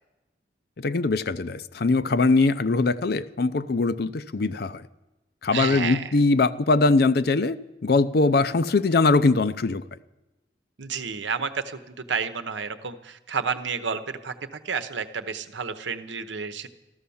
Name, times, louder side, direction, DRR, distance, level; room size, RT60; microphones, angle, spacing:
voice 1, 0.8-4.9 5.4-9.8, left 3 dB, 55° left, 14 dB, 0.5 m, -22 dB
voice 2, 5.5-6.1 10.8-16.7, right 5 dB, 75° right, 10 dB, 0.9 m, -31 dB
14.0 x 13.0 x 7.1 m, 1.0 s
head